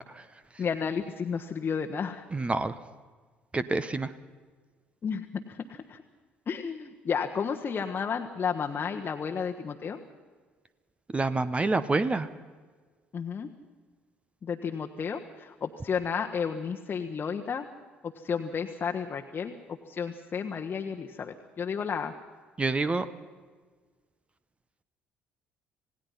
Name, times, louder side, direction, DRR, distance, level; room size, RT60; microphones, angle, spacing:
voice 1, 0.6-2.2 5.0-6.0 6.5-10.0 13.1-13.5 14.4-17.7 18.0-19.5 19.9-22.1, left 6 dB, 35° left, 3 dB, 1.3 m, -32 dB
voice 2, 2.3-2.7 3.5-4.1 11.1-12.3 22.6-23.0, right 3 dB, 20° right, 12 dB, 1.0 m, -27 dB
27.5 x 18.0 x 5.6 m, 1.5 s
figure-of-eight pair, 50°, 6 cm